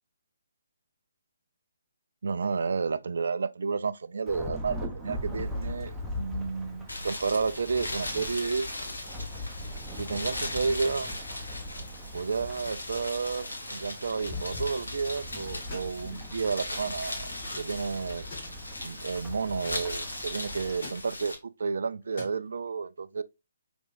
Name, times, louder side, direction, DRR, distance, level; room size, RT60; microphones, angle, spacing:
voice 1, 2.2-8.7 9.9-11.1 12.1-18.3 18.8-23.2, right 5 dB, 65° right, 0.3 m, -31 dB
Thunderstorm / Rain, 4.3-20.8, left 1 dB, 5° right, 0.8 m, -40 dB
sound 1, 6.9-21.4, left 1 dB, 80° left, 1.2 m, -38 dB
sound 2, 12.9-13.3 14.1-14.8 15.5-15.9 17.3-17.8 18.1-18.7 19.6-19.8 20.7-21.0 22.0-22.4, left 2 dB, 50° left, 1.8 m, -44 dB
4.9 x 3.5 x 2.4 m
figure-of-eight pair, 140°, 0 cm